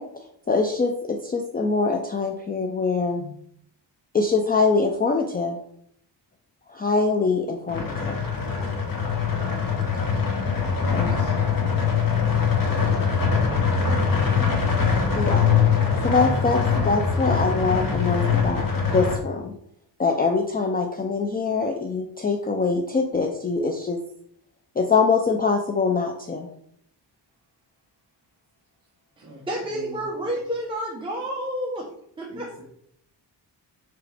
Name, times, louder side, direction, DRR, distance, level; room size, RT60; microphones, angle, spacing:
voice 1, 0.0-3.3 4.1-5.6 6.7-8.2 10.9-11.1 15.1-15.5 16.0-19.5 20.0-24.0 24.8-26.5, left 4 dB, 20° left, 3 dB, 0.4 m, -24 dB
sound 1, 7.7-19.2, left 6 dB, 50° left, 1.4 m, -23 dB
voice 2, 13.8-14.8 29.2-29.4 29.7-30.0 30.3-30.4 32.3-32.6, right 2 dB, 35° right, -4 dB, 2.2 m, -42 dB
voice 3, 29.2-31.9 32.2-32.6, equal, 10° right, -3 dB, 0.8 m, -30 dB
6.0 x 4.8 x 3.4 m, 0.69 s
wide cardioid pair, 175°, 43 cm